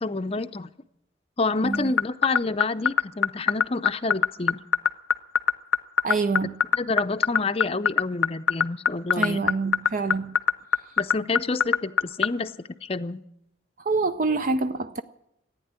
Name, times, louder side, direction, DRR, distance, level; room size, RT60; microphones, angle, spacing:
voice 1, 0.0-0.7 1.4-4.6 6.7-9.5 11.0-12.6 12.8-13.2, left 3 dB, 30° left, 0.6 m, -28 dB
sound 1, 1.7-12.3, left 7 dB, 80° left, 0.6 m, -19 dB
voice 2, 6.0-6.6 9.1-10.4 13.8-15.0, right 3 dB, 45° right, 0.5 m, -26 dB
15.0 x 9.6 x 9.6 m
head